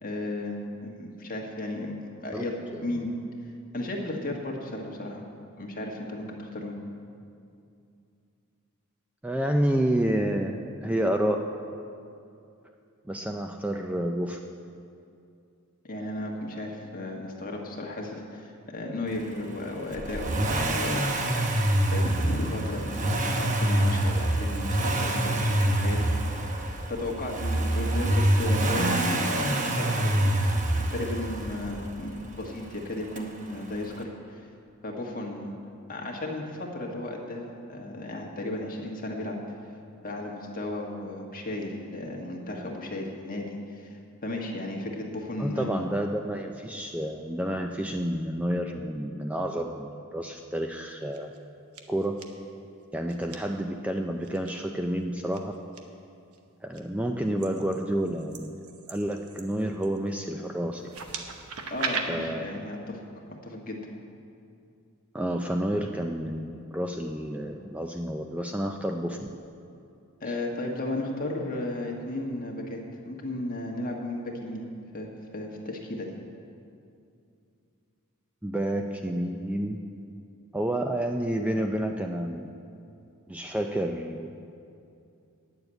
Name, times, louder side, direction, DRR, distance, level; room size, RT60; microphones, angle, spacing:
voice 1, 0.0-2.6 2.8-3.1 3.7-5.2 5.6-6.8 15.8-21.1 21.9-26.5 26.9-34.1 34.3-34.5 34.8-35.5 35.9-39.4 40.0-45.8 61.7-63.0 63.4-63.8 70.2-72.8 73.0-74.6 74.9-76.1, left 1 dB, 40° left, 0 dB, 1.5 m, -34 dB
voice 2, 9.2-11.4 13.1-14.4 45.4-51.3 51.9-52.2 52.9-55.5 56.6-58.6 58.9-60.8 62.1-62.5 65.1-69.3 70.3-70.4 78.4-79.8 80.5-82.5 83.3-84.3, right 1 dB, 5° right, 3 dB, 0.4 m, -29 dB
Accelerating revving vroom, 19.9-31.9 33.2-33.3, right 1 dB, 35° right, 0.9 m, -26 dB
sound 1, 50.9-51.4 51.7-52.3 53.1-53.4 54.2-54.5 55.3-55.8 56.3-56.8 57.4-60.1 60.8-62.0, right 5 dB, 90° right, 1.0 m, -38 dB
9.6 x 7.0 x 8.8 m, 2.5 s
head